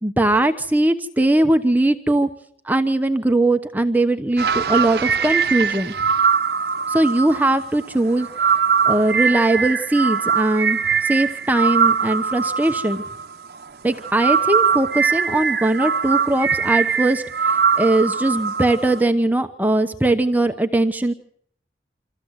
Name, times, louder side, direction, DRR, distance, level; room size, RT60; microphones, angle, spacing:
voice 1, 0.0-2.3 2.6-5.9 6.9-8.5 8.8-13.0 13.8-21.1, right 2 dB, 10° right, 7 dB, 1.0 m, -20 dB
sound 1, 4.4-13.6 14.0-19.0, right 6 dB, 65° right, 0.8 m, -21 dB
26.0 x 15.0 x 8.1 m, 0.65 s
head